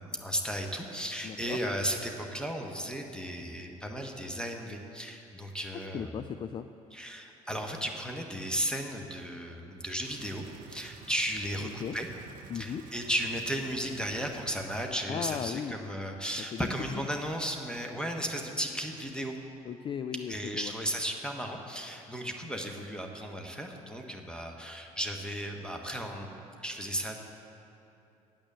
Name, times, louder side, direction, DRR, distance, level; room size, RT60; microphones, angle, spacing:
voice 1, 0.0-6.1 6.9-12.1 12.5-19.4 20.3-27.1, equal, 5° left, 3 dB, 1.2 m, -35 dB
voice 2, 1.2-1.6 5.7-6.7 11.6-12.0 12.5-12.8 15.1-15.7 16.5-16.7 16.9-17.0 19.7-20.7, left 8 dB, 25° left, 9 dB, 0.3 m, -36 dB
sound 1, 10.0-15.0 15.3-15.4, right 6 dB, 50° right, 0.7 m, -51 dB
9.0 x 8.7 x 8.2 m, 2.8 s
figure-of-eight pair, 55°, 19 cm